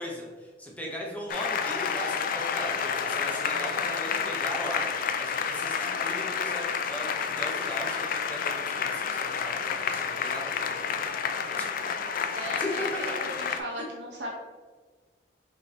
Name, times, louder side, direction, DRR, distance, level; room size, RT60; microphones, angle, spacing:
voice 1, 0.0-11.0 11.6-11.7 12.3-12.7, equal, 10° left, -2 dB, 0.7 m, -39 dB
Applause, 1.3-13.6, left 6 dB, 50° left, 0.3 m, -30 dB
voice 2, 12.3-14.3, right 1 dB, 70° right, -3 dB, 0.9 m, -37 dB
5.2 x 2.7 x 3.3 m, 1.4 s
head